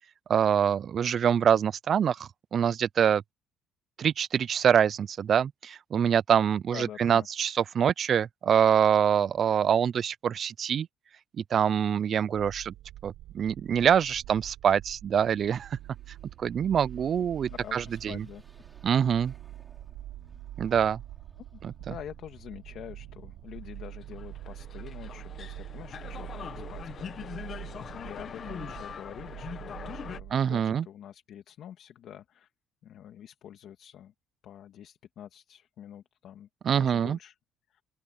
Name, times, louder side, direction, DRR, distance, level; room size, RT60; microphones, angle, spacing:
voice 1, 0.3-3.2 4.0-10.9 11.5-12.7 13.0-15.8 16.4-18.2 18.8-19.3 20.6-21.0 21.6-21.7 30.3-30.9 36.6-37.2, right 8 dB, 45° right, 0.3 m, -25 dB
voice 2, 6.7-7.3 17.5-18.4 21.4-32.5 32.8-34.1 34.4-37.4 37.7-37.8, left 10 dB, 60° left, 2.2 m, -46 dB
sound 1, 12.3-30.3, right 15 dB, 75° right, 5.4 m, -45 dB
Car passing by / Accelerating revving vroom, 15.2-26.4, right 2 dB, 10° right, 6.1 m, -59 dB
sound 2, 23.9-30.2, left 7 dB, 40° left, 1.1 m, -42 dB
open air
cardioid pair, 120°, 0 cm